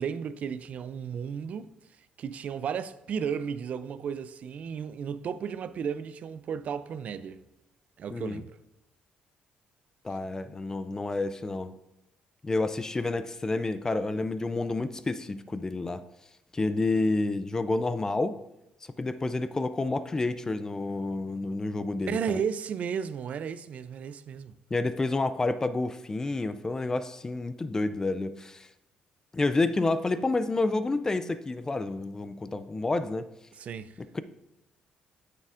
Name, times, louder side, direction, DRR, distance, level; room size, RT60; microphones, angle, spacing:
voice 1, 0.0-1.7 2.2-7.4 8.0-8.5 22.1-24.6 33.6-34.0, right 7 dB, 55° right, 0.3 m, -34 dB
voice 2, 8.1-8.4 10.0-11.7 12.4-16.0 16.5-18.4 19.0-22.4 24.7-28.7 29.3-33.3 34.0-34.2, left 2 dB, 20° left, 0.3 m, -29 dB
9.3 x 6.7 x 2.5 m
cardioid pair, 110°, 3 cm